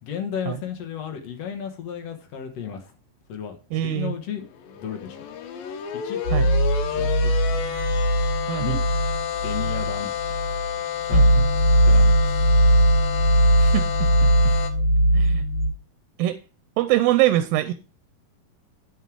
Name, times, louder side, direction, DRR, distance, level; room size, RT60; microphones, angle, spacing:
voice 1, 0.0-2.9 3.3-3.6 3.8-4.5 4.8-5.2 6.0-6.2 6.9-7.2 8.6-8.8 9.4-10.1 11.1-11.3 11.8-12.4 14.5-14.6, left 8 dB, 60° left, 3 dB, 2.0 m, -33 dB
voice 2, 3.7-4.2 6.3-6.5 8.5-8.8 11.1-11.5 13.6-14.3 15.1-15.4 16.2-16.4 16.8-17.7, right 14 dB, 85° right, 10 dB, 2.4 m, -24 dB
sound 1, 4.6-14.7, left 9 dB, 80° left, 2.8 m, -30 dB
sound 2, 6.2-15.7, right 1 dB, 45° left, 7.1 m, -20 dB
9.4 x 6.6 x 4.7 m, 0.34 s
omnidirectional pair, 4.0 m